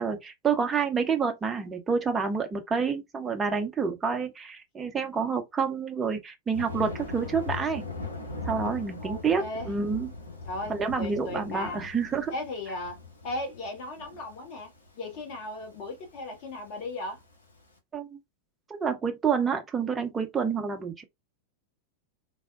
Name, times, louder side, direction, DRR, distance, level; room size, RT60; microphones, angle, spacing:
voice 1, 0.0-7.8 8.5-10.1 10.7-12.3 17.9-18.2 18.7-21.0, right 5 dB, 15° right, 0.6 m, -28 dB
Thunder, 6.5-17.6, left 3 dB, 80° left, 0.8 m, -40 dB
voice 2, 9.0-9.7 10.4-11.9 12.3-13.0 13.2-17.2, left 2 dB, 45° left, 1.1 m, -37 dB
3.4 x 2.1 x 2.3 m
figure-of-eight pair, 90°, 0 cm